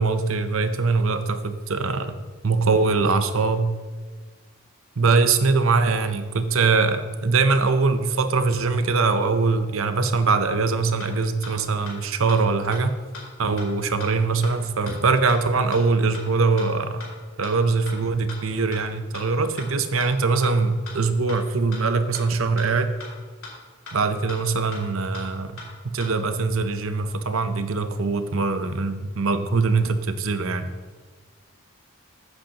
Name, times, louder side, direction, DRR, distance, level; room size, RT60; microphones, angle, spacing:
voice 1, 0.0-2.2 2.4-3.7 5.0-13.0 13.4-17.0 17.4-22.9 23.9-25.6 25.8-30.7, right 4 dB, 70° right, 9 dB, 0.7 m, -22 dB
sound 1, 11.0-11.1 11.4-11.5 11.9-12.0 12.3-12.4 12.7-12.8 13.1-13.2 13.6-13.7 14.0-14.1 14.4-14.5 14.9-15.0 15.3-15.4 15.7-15.8 16.1-16.2 16.6-16.7 17.0-17.1 17.4-17.5 17.9-18.0 18.3-18.4 18.7-18.8 19.1-19.2 19.6-19.7 20.0-20.1 20.4-20.5 20.9-21.0 21.3-21.4 21.7-21.8 22.1-22.2 22.6-22.7 23.0-23.1 23.4-23.5 23.9-24.0 24.3-24.4 24.7-24.8 25.1-25.2 25.6-25.7 26.0-26.1, left 4 dB, 70° left, 3.0 m, -38 dB
14.5 x 8.0 x 2.9 m, 1.4 s
head